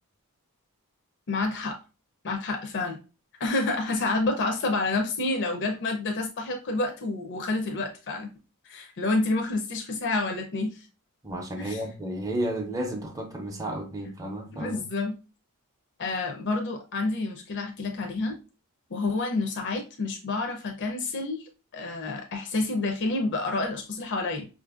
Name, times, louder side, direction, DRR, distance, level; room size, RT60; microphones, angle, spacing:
voice 1, 1.3-1.8 2.2-3.0 3.4-8.3 8.6-10.9 11.6-11.8 14.6-15.2 16.0-18.4 18.9-24.5, left 3 dB, 55° left, 0.5 m, -29 dB
voice 2, 11.2-14.8, right 1 dB, 15° right, 0.6 m, -32 dB
5.2 x 2.5 x 2.4 m
head